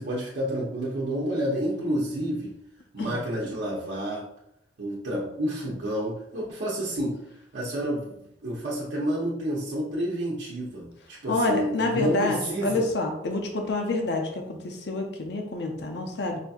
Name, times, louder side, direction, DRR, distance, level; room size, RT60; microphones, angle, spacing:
voice 1, 0.0-2.5 2.9-4.2 4.8-7.2 7.5-12.9, equal, 75° right, -6 dB, 0.7 m, -29 dB
voice 2, 11.3-16.4, left 2 dB, 65° left, 2 dB, 0.6 m, -28 dB
4.9 x 2.6 x 2.4 m, 0.79 s
head